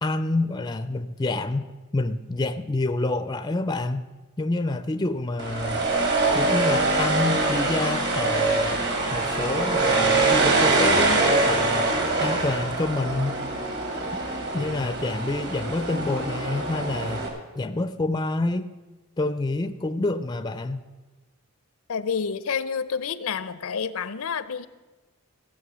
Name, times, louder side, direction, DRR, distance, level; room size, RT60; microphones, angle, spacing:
voice 1, 0.0-1.7 1.9-4.0 4.4-5.8 6.3-8.8 9.1-11.9 12.2-13.4 14.5-17.3 17.6-18.7 19.2-20.8, left 2 dB, 20° left, 11 dB, 0.4 m, -27 dB
sound 1, 5.4-17.3, right 3 dB, 50° right, 2.1 m, -24 dB
voice 2, 21.9-24.7, left 6 dB, 80° left, 15 dB, 0.6 m, -29 dB
15.5 x 7.5 x 6.1 m, 1.2 s
head